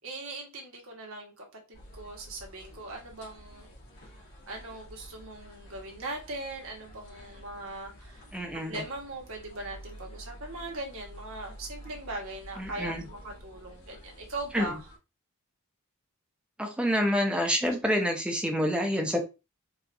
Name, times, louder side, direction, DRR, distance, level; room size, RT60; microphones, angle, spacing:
voice 1, 0.0-3.7 4.5-8.2 8.5-14.8, right 2 dB, 65° right, 1 dB, 1.2 m, -40 dB
sound 1, 1.7-15.0, equal, 80° left, 1.7 m, -49 dB
voice 2, 8.3-8.8 12.6-13.1 14.5-14.8 16.6-19.2, equal, 5° right, 3 dB, 0.6 m, -28 dB
4.7 x 2.4 x 2.6 m, 0.28 s
head